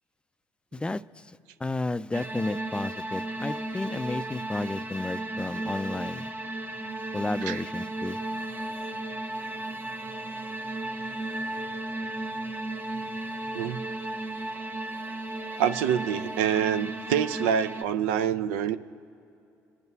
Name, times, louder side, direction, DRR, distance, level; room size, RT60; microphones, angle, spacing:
voice 1, 0.7-6.3 7.1-8.2, left 2 dB, 15° left, 14 dB, 0.3 m, -32 dB
sound 1, 2.1-17.8, right 1 dB, 30° right, 0.7 m, -34 dB
voice 2, 15.6-18.8, right 9 dB, 90° right, 10 dB, 0.4 m, -26 dB
30.0 x 10.5 x 2.7 m, 2.7 s
supercardioid pair, 65°, 7 cm